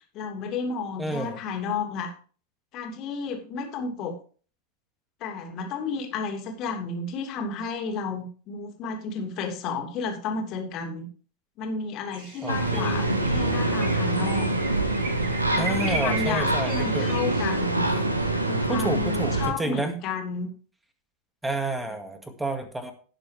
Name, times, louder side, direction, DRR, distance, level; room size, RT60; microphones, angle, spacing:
voice 1, 0.1-2.1 2.7-4.2 5.2-11.1 11.6-14.5 15.5-17.9 18.4-20.5, left 4 dB, 35° left, 3 dB, 2.8 m, -32 dB
voice 2, 1.0-1.4 12.4-13.0 15.6-17.1 18.7-19.9 21.4-22.9, right 2 dB, 5° right, 7 dB, 2.0 m, -30 dB
Morning Amb & Birds, 12.1-17.6, right 3 dB, 45° right, 6.1 m, -37 dB
sound 1, 12.5-19.5, right 2 dB, 85° right, 1.6 m, -25 dB
17.5 x 6.9 x 3.4 m, 0.41 s
figure-of-eight pair, 90°, 0 cm